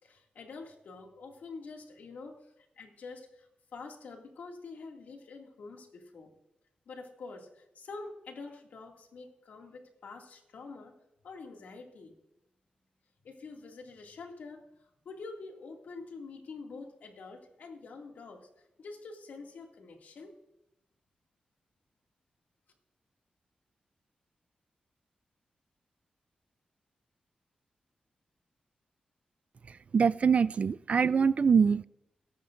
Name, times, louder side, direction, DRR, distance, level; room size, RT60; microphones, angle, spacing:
voice 1, 0.0-6.3 6.9-10.9 11.2-12.1 13.2-14.6 15.1-18.5 18.8-20.3, left 4 dB, 85° left, 2 dB, 2.3 m, -46 dB
voice 2, 29.7-31.8, right 6 dB, 50° right, 18 dB, 0.4 m, -24 dB
22.0 x 11.0 x 2.6 m, 0.88 s
wide cardioid pair, 100°, 3 cm